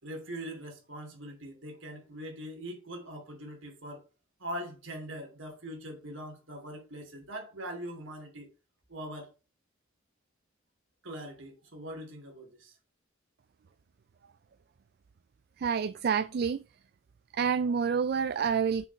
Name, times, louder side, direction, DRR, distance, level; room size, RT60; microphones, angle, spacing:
voice 1, 0.0-4.0 4.4-8.5 8.9-9.3 11.0-12.8, equal, 70° right, 2.9 m, -42 dB
voice 2, 15.6-16.6 17.3-18.9, right 6 dB, 55° right, 0.3 m, -28 dB
6.7 x 5.0 x 5.5 m
head